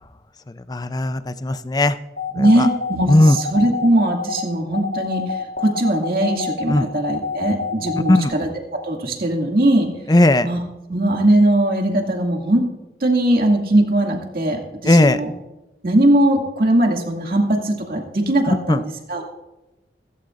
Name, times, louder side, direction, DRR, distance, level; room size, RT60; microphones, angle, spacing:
voice 1, 0.7-2.0 2.4-2.7 3.1-3.4 6.7-6.9 8.1-8.3 10.1-10.5 14.8-15.2 18.7-18.8, left 1 dB, 20° left, 13 dB, 0.5 m, -16 dB
sound 1, 2.2-8.2, left 4 dB, 75° left, 1.5 m, -27 dB
voice 2, 2.3-8.5 8.8-9.9 10.4-10.6 10.9-12.7 13.0-15.3 15.8-19.2, right 1 dB, 55° right, 1 dB, 2.3 m, -19 dB
16.0 x 15.5 x 2.5 m, 1.0 s
head